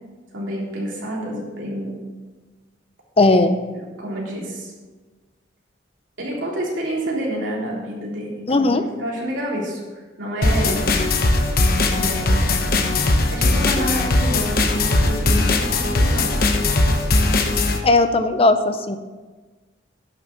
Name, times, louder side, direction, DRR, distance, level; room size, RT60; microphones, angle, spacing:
voice 1, 0.3-2.0 3.2-3.5 4.0-4.7 6.2-10.9 12.0-12.6 13.3-16.5, equal, 90° right, -4 dB, 3.4 m, -28 dB
voice 2, 3.2-3.6 8.5-8.9 17.8-19.0, left 2 dB, 30° left, 9 dB, 0.6 m, -17 dB
sound 1, 10.4-17.8, left 2 dB, 50° left, 1.0 m, -19 dB
11.0 x 6.7 x 5.9 m, 1.3 s
head